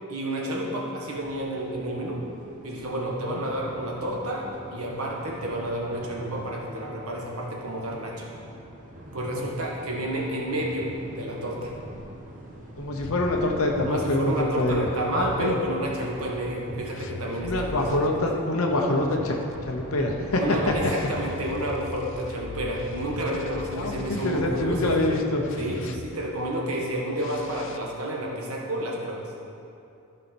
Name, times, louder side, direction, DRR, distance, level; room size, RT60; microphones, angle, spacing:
voice 1, 0.1-2.2 2.6-8.3 9.1-11.7 13.8-18.1 20.4-25.0 25.6-29.3, right 1 dB, 80° right, -2 dB, 1.6 m, -30 dB
sound 1, 1.1-20.7, right 1 dB, 35° right, 1.2 m, -43 dB
voice 2, 12.8-15.6 17.4-19.4 19.6-20.4 23.8-25.4, left 2 dB, 70° left, 1 dB, 0.9 m, -25 dB
sound 2, 13.0-18.1 19.0-26.4 27.1-27.8, left 3 dB, 55° left, 0.5 m, -40 dB
14.0 x 5.6 x 4.3 m, 2.7 s
head